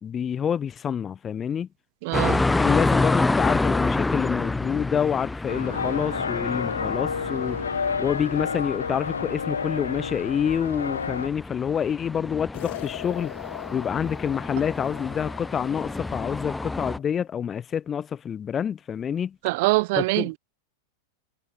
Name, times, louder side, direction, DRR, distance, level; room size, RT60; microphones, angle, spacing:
voice 1, 0.0-1.7 2.5-13.3 13.7-19.4 20.0-20.3, left 8 dB, 25° left, 2.2 m, -27 dB
voice 2, 2.0-2.5 19.4-20.4, right 25 dB, 50° right, 0.7 m, -23 dB
sound 1, 2.1-17.0, left 2 dB, 10° left, 3.7 m, -29 dB
sound 2, 5.5-11.3, left 5 dB, 75° left, 3.4 m, -30 dB
sound 3, 12.5-17.0, left 17 dB, 55° left, 2.7 m, -41 dB
figure-of-eight pair, 90°, 0 cm